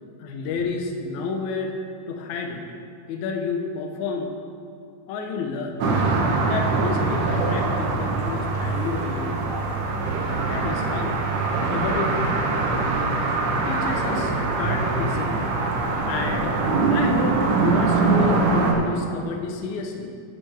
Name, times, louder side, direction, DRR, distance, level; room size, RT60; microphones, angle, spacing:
voice 1, 0.2-1.8 2.1-2.6 3.1-4.3 5.1-5.9 6.4-9.6 10.3-11.2 11.7-12.1 13.6-15.5 16.0-16.6 16.9-20.1, left 4 dB, 80° left, 3 dB, 1.7 m, -30 dB
sound 1, 5.8-18.7, right 3 dB, 80° right, 3.1 m, -23 dB
11.0 x 9.9 x 3.4 m, 2.3 s
omnidirectional pair, 4.5 m